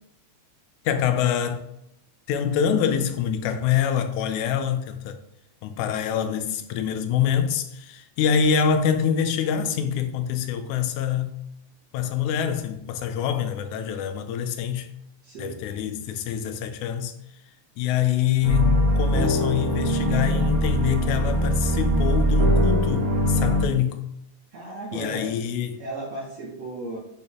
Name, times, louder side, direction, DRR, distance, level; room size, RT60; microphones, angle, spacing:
voice 1, 0.9-1.7 2.3-5.2 5.6-11.4 11.9-14.9 15.4-17.2 17.8-24.0 24.9-25.8, left 8 dB, 90° left, 2.1 m, -25 dB
voice 2, 15.2-15.6 24.5-25.4 25.8-27.0, right 2 dB, 60° right, 2.4 m, -35 dB
sound 1, 18.4-23.6, equal, 75° right, 2.9 m, -22 dB
8.3 x 4.3 x 3.6 m
omnidirectional pair, 3.4 m